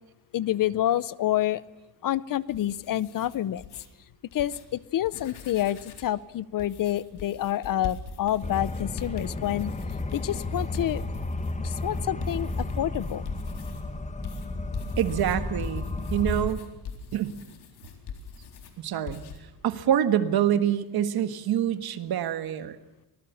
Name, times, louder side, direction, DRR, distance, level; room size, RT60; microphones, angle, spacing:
voice 1, 0.3-1.6 2.0-3.6 4.3-9.7 10.1-11.0 11.6-13.2, left 12 dB, 55° left, 20 dB, 0.7 m, -28 dB
sound 1, 2.5-3.9 4.3-4.6 5.0-6.2 6.6-13.8 14.2-18.7 19.1-19.4, left 6 dB, 75° left, 4.1 m, -43 dB
sound 2, 8.4-16.5, left 2 dB, 20° left, 1.4 m, -32 dB
voice 2, 15.0-16.7 17.1-17.4 18.8-19.2 19.6-22.8, right 10 dB, 65° right, 11 dB, 1.7 m, -26 dB
24.5 x 19.5 x 7.1 m, 0.99 s
cardioid pair, 130°, 40 cm